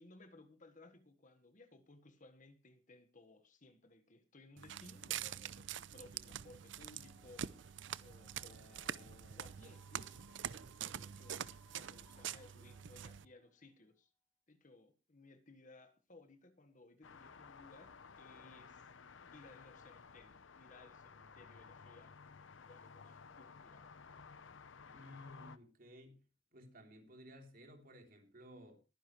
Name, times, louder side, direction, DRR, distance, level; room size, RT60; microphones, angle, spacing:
voice 1, 0.0-14.1 14.5-18.9 19.1-22.2 22.7-23.9, left 2 dB, 45° left, 1.5 m, -61 dB
Walk footsteps, 4.6-13.2, right 9 dB, 70° right, 0.6 m, -46 dB
sound 1, 6.9-13.7, left 2 dB, 20° left, 3.7 m, -70 dB
sound 2, 17.0-25.6, left 5 dB, 90° left, 0.8 m, -56 dB
voice 2, 24.9-26.2 26.5-28.8, equal, 50° right, 3.4 m, -56 dB
21.5 x 10.0 x 3.2 m
head